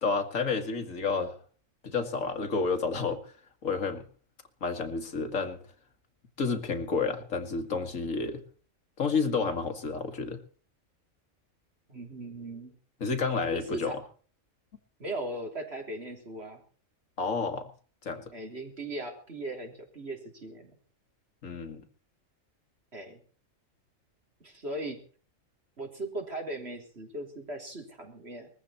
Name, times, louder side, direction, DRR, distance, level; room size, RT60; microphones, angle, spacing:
voice 1, 0.0-1.4 1.8-3.2 3.6-4.0 4.6-5.6 6.4-8.4 9.0-10.4 13.0-13.9 17.2-17.7 18.0-18.3 21.4-21.9, left 4 dB, 75° left, 7 dB, 2.2 m, -30 dB
voice 2, 11.9-12.7 13.5-14.0 15.0-16.6 18.3-20.7 22.9-23.2 24.4-25.0 25.8-28.5, right 1 dB, 50° right, 3 dB, 3.7 m, -38 dB
20.5 x 14.5 x 4.3 m, 0.42 s
omnidirectional pair, 1.4 m